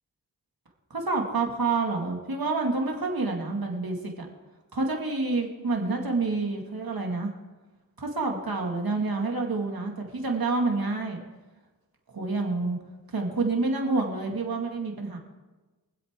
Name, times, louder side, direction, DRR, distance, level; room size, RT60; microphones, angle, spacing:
voice 1, 0.9-4.3 4.7-7.3 8.0-11.2 12.1-12.8 13.1-15.2, right 3 dB, 75° right, 1 dB, 2.3 m, -28 dB
24.0 x 8.2 x 3.7 m, 1.2 s
cardioid pair, 40°, 36 cm